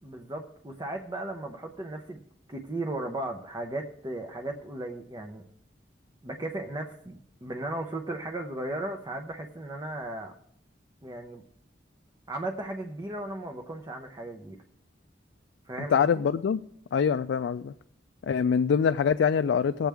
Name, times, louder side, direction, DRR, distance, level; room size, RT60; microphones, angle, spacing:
voice 1, 0.0-2.2 2.5-5.4 6.2-10.3 11.0-11.4 12.3-14.6 15.7-16.1, right 1 dB, 20° right, 2 dB, 0.7 m, -36 dB
voice 2, 15.9-16.6 16.9-17.7 18.2-19.9, left 6 dB, 75° left, 9 dB, 0.3 m, -24 dB
18.5 x 7.4 x 3.5 m, 0.73 s
head